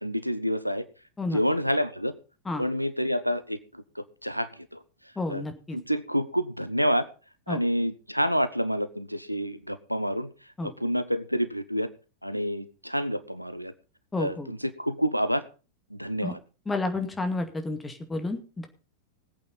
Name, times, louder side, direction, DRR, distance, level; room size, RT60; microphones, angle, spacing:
voice 1, 0.0-0.8 1.3-2.1 2.6-4.8 5.3-5.4 5.7-7.1 7.5-10.3 10.6-11.9 12.2-13.7 14.2-15.4 15.9-16.4, equal, 90° right, 14 dB, 0.8 m, -28 dB
voice 2, 5.2-5.8 7.5-7.6 10.6-10.7 14.1-14.5 16.2-16.3 16.7-18.7, left 2 dB, 10° left, 6 dB, 2.1 m, -31 dB
19.5 x 8.5 x 4.0 m, 0.34 s
figure-of-eight pair, 90°, 0 cm